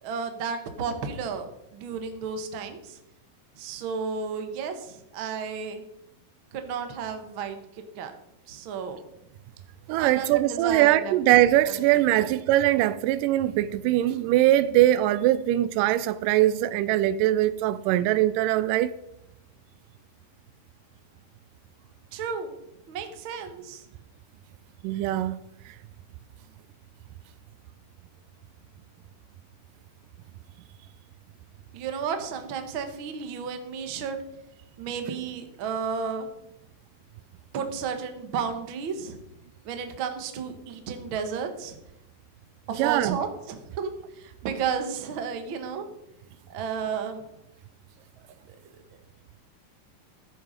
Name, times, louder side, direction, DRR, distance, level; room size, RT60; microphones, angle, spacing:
voice 1, 0.0-1.5 1.7-3.0 3.6-5.8 6.5-8.1 8.5-9.0 10.0-11.1 12.2-12.3 22.1-22.5 22.9-23.8 31.7-34.2 34.8-36.3 37.5-39.2 39.6-41.8 42.7-45.8 46.5-47.2 48.5-48.6, right 6 dB, 65° right, 1.2 m, -32 dB
voice 2, 9.9-18.9 24.8-25.4 25.7-25.8 42.7-43.2, right 14 dB, 90° right, 1.8 m, -22 dB
15.0 x 8.0 x 5.1 m
omnidirectional pair, 4.3 m